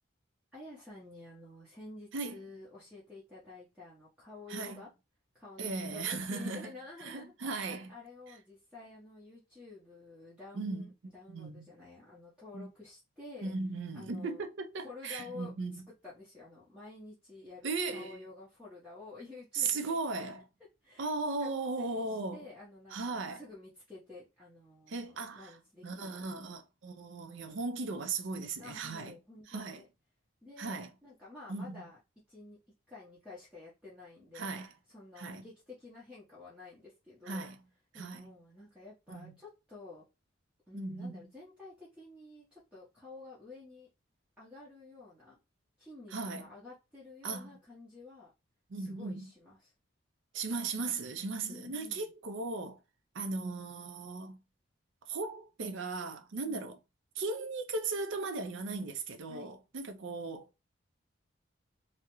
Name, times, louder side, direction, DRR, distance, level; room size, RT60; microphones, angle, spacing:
voice 1, 0.5-4.9 5.3-7.3 7.9-13.5 13.9-14.5 14.8-20.0 20.8-21.1 21.4-21.5 21.8-26.5 28.6-29.9 30.4-30.8 31.0-32.0 32.3-32.6 32.9-34.5 34.9-37.5 37.9-40.1 40.7-43.9 44.4-45.4 45.8-48.3 48.7-49.7 51.4-52.1 56.4-56.7 59.3-59.5, left 3 dB, 5° right, 0.7 m, -51 dB
voice 2, 4.5-4.8 5.6-6.7 7.0-7.9 8.3-8.4 10.5-10.9 11.3-11.7 12.5-12.7 13.4-15.8 17.6-18.2 19.5-20.5 21.0-22.5 22.9-23.4 24.9-25.6 25.8-29.1 29.5-29.8 30.6-30.9 31.5-31.8 34.3-34.7 35.2-35.5 37.3-37.6 37.9-38.3 39.1-39.3 40.7-41.2 46.1-46.5 47.2-47.6 48.7-49.3 50.3-52.8 53.1-54.4 55.0-56.7 57.2-60.6, right 3 dB, 65° right, 0.5 m, -37 dB
2.3 x 2.1 x 2.9 m
head